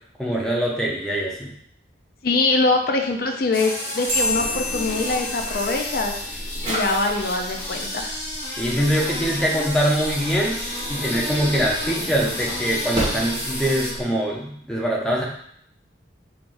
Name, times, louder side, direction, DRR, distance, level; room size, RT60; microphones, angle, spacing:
voice 1, 0.2-1.5 8.6-10.6 10.9-15.2, equal, 5° left, -3 dB, 0.7 m, -23 dB
voice 2, 2.2-6.1 6.6-8.2, left 3 dB, 55° left, 4 dB, 0.5 m, -23 dB
sound 1, 3.5-13.9, left 1 dB, 35° left, 1.2 m, -31 dB
Drawer open or close, 4.1-14.0, equal, 35° right, 1.5 m, -34 dB
sound 2, 4.1-6.9, left 2 dB, 55° right, 1.7 m, -30 dB
4.6 x 3.8 x 2.5 m, 0.66 s
head